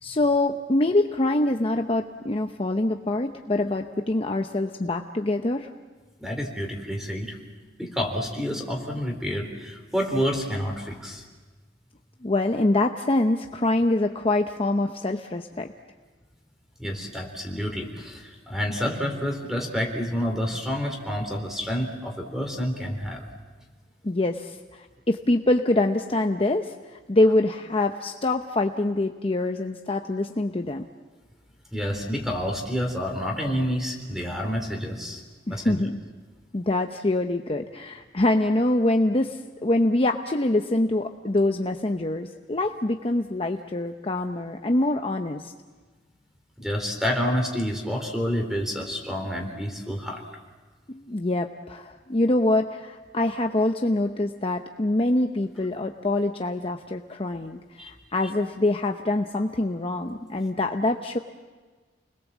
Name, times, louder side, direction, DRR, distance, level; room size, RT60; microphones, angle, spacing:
voice 1, 0.0-5.7 12.2-15.7 24.0-30.8 35.5-36.0 36.5-45.5 50.9-61.2, left 2 dB, 30° left, 4 dB, 0.8 m, -25 dB
voice 2, 6.2-7.4 7.8-11.2 16.8-23.3 31.7-35.2 35.5-35.8 46.6-50.2 57.8-57.9, equal, 5° right, 3 dB, 3.7 m, -29 dB
30.0 x 21.0 x 7.4 m, 1.4 s
head